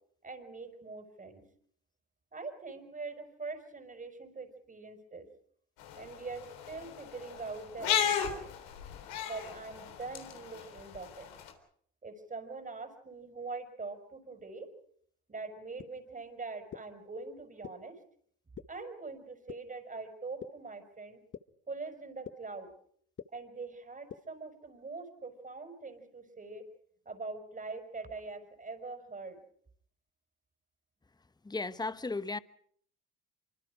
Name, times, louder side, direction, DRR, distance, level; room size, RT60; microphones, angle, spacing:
voice 1, 0.2-1.4 2.3-5.3 6.0-8.4 9.3-11.3 12.0-14.7 15.3-18.0 18.7-21.2 21.7-22.7 23.3-26.7 27.1-29.4, right 3 dB, 25° right, 5.5 m, -43 dB
sound 1, 5.8-11.5, left 9 dB, 80° left, 3.6 m, -35 dB
sound 2, 15.8-15.9 16.7-16.8 17.6-17.7 18.6-18.7 19.5-19.6 20.4-20.5 21.3-21.4 22.2-22.3 23.2-23.3 24.1-24.2, left 8 dB, 40° left, 1.1 m, -42 dB
voice 2, 31.4-32.4, left 3 dB, 15° left, 1.1 m, -35 dB
25.5 x 24.5 x 5.0 m
supercardioid pair, 70°, 30 cm